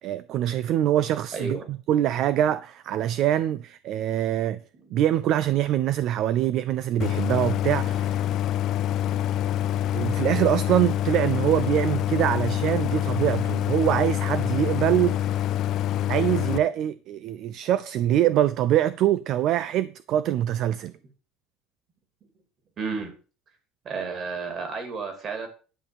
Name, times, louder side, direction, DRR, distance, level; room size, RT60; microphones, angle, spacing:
voice 1, 0.0-4.6 4.9-8.3 9.9-15.4 16.1-20.9, right 12 dB, 50° right, 0.5 m, -24 dB
voice 2, 1.3-1.7 4.7-4.9 22.8-23.1 23.8-25.5, right 4 dB, 30° right, 2.9 m, -32 dB
Idling, 7.0-16.6, left 11 dB, 45° left, 0.4 m, -26 dB
11.0 x 5.6 x 7.1 m
cardioid pair, 165°, 0 cm